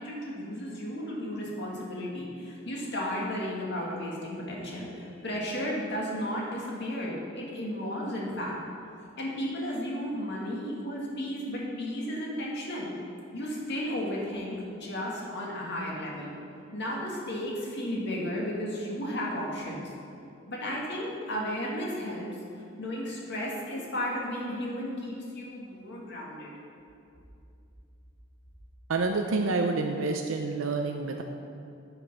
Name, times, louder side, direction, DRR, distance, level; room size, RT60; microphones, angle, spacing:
voice 1, 0.0-8.6 9.2-12.9 13.3-16.3 16.7-19.9 20.5-22.3 22.8-26.5, equal, 60° left, -3 dB, 2.0 m, -34 dB
voice 2, 28.9-31.2, right 3 dB, 75° right, 3 dB, 0.5 m, -28 dB
9.1 x 6.0 x 5.5 m, 2.5 s
head